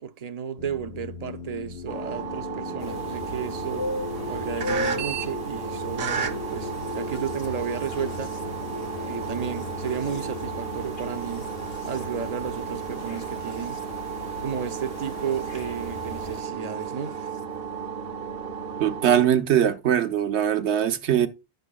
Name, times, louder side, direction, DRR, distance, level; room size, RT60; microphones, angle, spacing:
voice 1, 0.0-3.9 4.3-8.4 9.0-11.5 11.8-13.8 14.4-17.2, right 7 dB, 45° right, 0.6 m, -33 dB
sound 1, 0.6-15.7 16.8-17.4, left 5 dB, 60° left, 0.8 m, -40 dB
sound 2, 1.9-19.3, right 6 dB, 60° right, 1.0 m, -33 dB
sound 3, 2.8-16.4, left 2 dB, 80° left, 1.3 m, -39 dB
voice 2, 18.8-21.3, right 10 dB, 80° right, 1.1 m, -21 dB
10.5 x 6.6 x 2.3 m
omnidirectional pair, 1.1 m